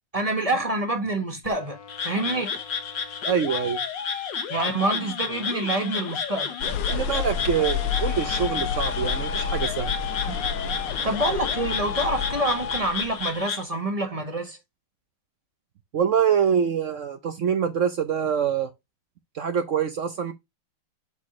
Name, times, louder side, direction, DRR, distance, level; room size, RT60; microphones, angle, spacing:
voice 1, 0.1-2.5 4.5-6.5 11.0-14.6, right 2 dB, 20° right, 1.2 m, -27 dB
sound 1, 1.4-12.8, left 7 dB, 65° left, 1.5 m, -36 dB
Frog, 1.9-13.6, left 6 dB, 45° left, 1.2 m, -32 dB
voice 2, 3.2-3.8 6.9-9.9 10.3-10.4 15.9-18.7 19.3-20.3, right 7 dB, 70° right, 0.7 m, -25 dB
sound 2, 6.6-13.4, left 6 dB, 85° left, 1.6 m, -30 dB
7.7 x 4.2 x 3.0 m
omnidirectional pair, 2.2 m